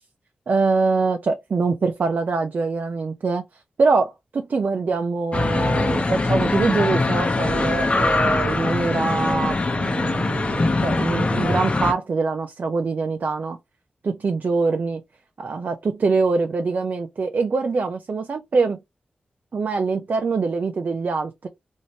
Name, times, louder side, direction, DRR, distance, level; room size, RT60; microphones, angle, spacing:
voice 1, 0.5-13.6 14.0-15.0 15.4-18.8 19.5-21.5, right 4 dB, 65° right, 0.5 m, -24 dB
sound 1, 5.3-11.9, left 3 dB, 40° left, 0.8 m, -22 dB
3.1 x 2.6 x 2.7 m
cardioid pair, 65°, 3 cm